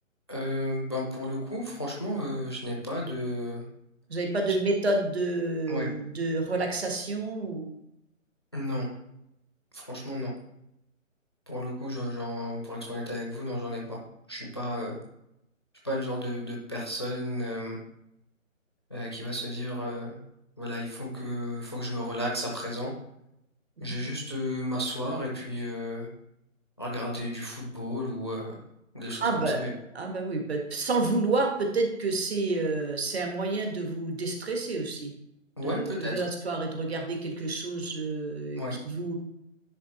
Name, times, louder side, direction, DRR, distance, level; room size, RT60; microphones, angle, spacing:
voice 1, 0.3-3.6 5.7-5.9 8.5-8.9 9.7-10.3 11.5-14.0 14.3-15.0 15.8-17.8 18.9-20.1 20.6-22.9 23.8-26.1 26.8-28.6 28.9-29.7 35.6-36.3 38.6-38.8, left 1 dB, 20° left, -2 dB, 0.6 m, -33 dB
voice 2, 4.1-7.8 23.8-24.0 29.2-29.6 29.9-35.1 35.6-39.1, right 3 dB, 50° right, 2 dB, 1.6 m, -29 dB
10.0 x 3.7 x 4.2 m, 0.82 s
hypercardioid pair, 170°, 40 cm